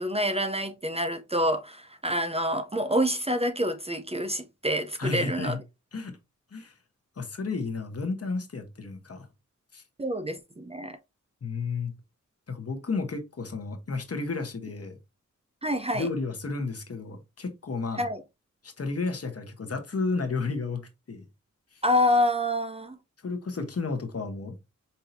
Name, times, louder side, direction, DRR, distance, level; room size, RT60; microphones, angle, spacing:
voice 1, 0.0-5.6 10.0-11.0 15.6-16.1 18.0-18.2 21.8-23.0, equal, 20° right, 0.6 m, -27 dB
voice 2, 5.0-5.6 5.9-6.2 6.5-6.7 7.2-9.3 9.7-9.8 11.4-11.9 12.5-15.0 15.9-18.0 18.6-21.2 21.7-21.8 23.2-24.6, left 4 dB, 50° left, 1.0 m, -32 dB
5.4 x 2.7 x 2.6 m
wide cardioid pair, 60°, 30 cm